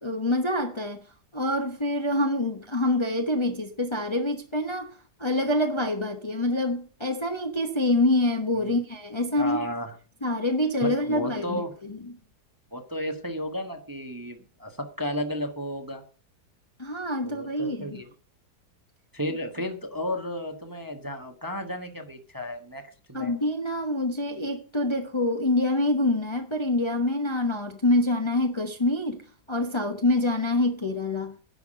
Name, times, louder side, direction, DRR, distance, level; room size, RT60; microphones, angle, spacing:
voice 1, 0.0-1.1 1.3-9.6 10.2-12.0 16.8-18.0 23.1-31.4, left 1 dB, 20° left, 1.0 m, -26 dB
voice 2, 9.3-9.9 10.8-11.7 12.7-16.0 17.2-18.1 19.1-23.3, equal, 15° right, 1.1 m, -33 dB
10.5 x 5.9 x 8.6 m
omnidirectional pair, 1.8 m